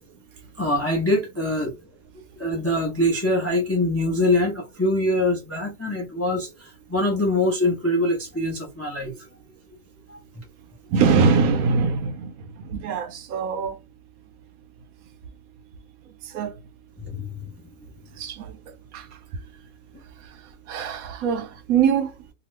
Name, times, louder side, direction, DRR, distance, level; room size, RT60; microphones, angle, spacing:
voice 1, 0.6-1.7 2.4-9.3 10.1-10.2 17.0-17.4, left 1 dB, 20° left, 0.4 m, -24 dB
voice 2, 10.9-13.8 16.2-16.5 18.2-18.5 18.9-19.1 20.7-22.1, right 5 dB, 70° right, 1.0 m, -23 dB
2.9 x 2.3 x 3.1 m
omnidirectional pair, 1.6 m